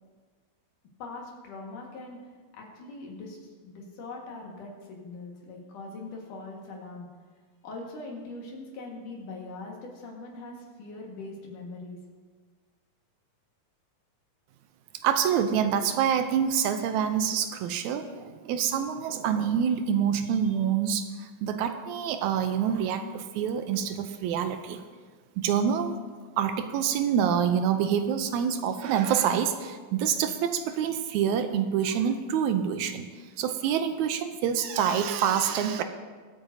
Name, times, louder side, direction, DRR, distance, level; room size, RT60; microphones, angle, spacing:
voice 1, 1.0-2.2 2.5-7.1 7.6-12.0, left 3 dB, 70° left, -1 dB, 3.1 m, -41 dB
voice 2, 15.0-24.8 25.4-26.0 26.4-33.1 33.4-35.8, right 8 dB, 80° right, 8 dB, 1.7 m, -26 dB
22.5 x 8.8 x 2.7 m, 1.5 s
omnidirectional pair, 3.9 m